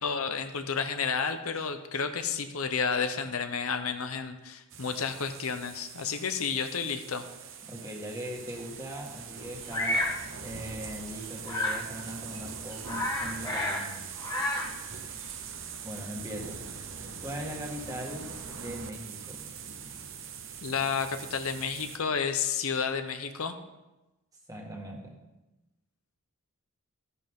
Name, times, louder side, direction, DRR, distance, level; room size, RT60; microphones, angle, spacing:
voice 1, 0.0-7.3 20.6-23.6, left 6 dB, 75° left, 8 dB, 0.9 m, -31 dB
sound 1, 4.7-22.0, right 6 dB, 60° right, 1.1 m, -42 dB
voice 2, 7.7-14.2 15.8-16.6 17.2-19.4 24.5-25.2, equal, 15° right, -1 dB, 1.8 m, -40 dB
Bird vocalization bird call bird song, 9.7-10.2 11.5-11.9 12.3-12.4 12.7-13.9 14.1-14.8, left 1 dB, 20° left, 1.6 m, -30 dB
13.0 x 11.0 x 3.7 m, 1.0 s
head